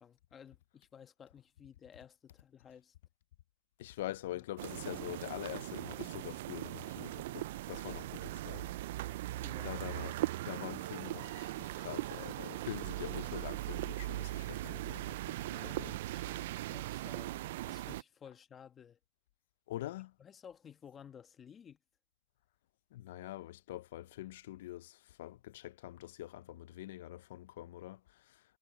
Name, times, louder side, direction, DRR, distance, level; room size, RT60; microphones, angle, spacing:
voice 1, 0.0-2.9 4.1-4.4 9.4-9.8 15.4-19.0 20.2-21.8, left 8 dB, 20° left, 1.2 m, -55 dB
voice 2, 3.8-9.2 9.6-10.2 10.4-15.4 15.6-15.9 19.7-20.1 22.9-28.4, left 15 dB, 80° left, 0.4 m, -45 dB
sound 1, 4.6-18.0, right 16 dB, 75° right, 0.3 m, -39 dB
supercardioid pair, 155°, 0 cm